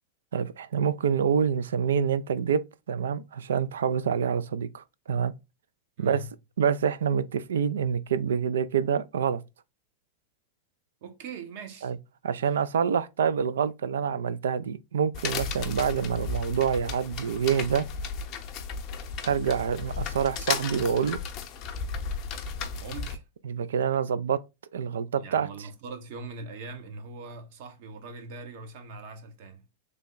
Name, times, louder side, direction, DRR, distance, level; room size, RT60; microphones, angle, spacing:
voice 1, 0.3-2.6 2.9-5.3 6.0-6.2 6.6-9.4 11.8-12.0 12.2-17.9 19.2-21.2 23.4-24.4 24.7-25.5, right 7 dB, 80° right, 0.3 m, -26 dB
voice 2, 6.0-6.3 11.0-11.9 12.3-12.6 22.7-23.2 25.2-29.6, right 3 dB, 60° right, 0.9 m, -41 dB
sound 1, 15.1-23.2, left 6 dB, 45° left, 0.6 m, -34 dB
3.4 x 2.2 x 3.8 m
hypercardioid pair, 105°, 0 cm